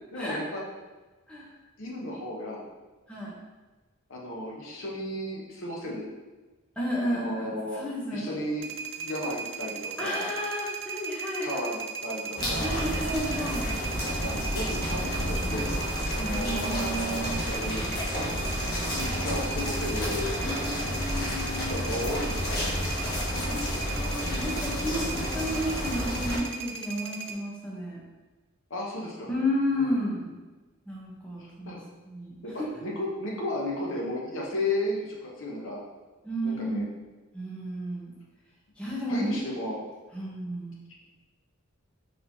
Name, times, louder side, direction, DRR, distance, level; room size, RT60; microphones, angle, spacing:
voice 1, 0.1-0.6 1.8-2.6 4.1-6.1 7.0-7.8 8.1-8.7 9.0-10.3 11.4-12.8 14.0-15.7 16.1-17.8 18.9-20.6 21.7-22.7 28.7-29.3 29.7-30.0 31.4-31.8 32.4-35.8 36.4-36.9 39.1-39.8, left 1 dB, 65° left, -2 dB, 0.9 m, -34 dB
voice 2, 6.8-7.5 7.7-8.2 10.0-11.6 12.6-13.7 16.2-17.6 20.4-21.9 23.2-28.0 29.3-30.3 30.9-31.8 32.0-32.3 32.6-32.7 36.2-36.8 37.3-38.1 38.8-39.4 40.1-40.7, equal, 5° left, -6 dB, 0.8 m, -32 dB
sound 1, 8.6-27.3, right 5 dB, 60° right, 0.5 m, -37 dB
sound 2, 12.4-26.4, equal, 50° left, 1.2 m, -30 dB
4.2 x 4.2 x 2.7 m, 1.2 s
head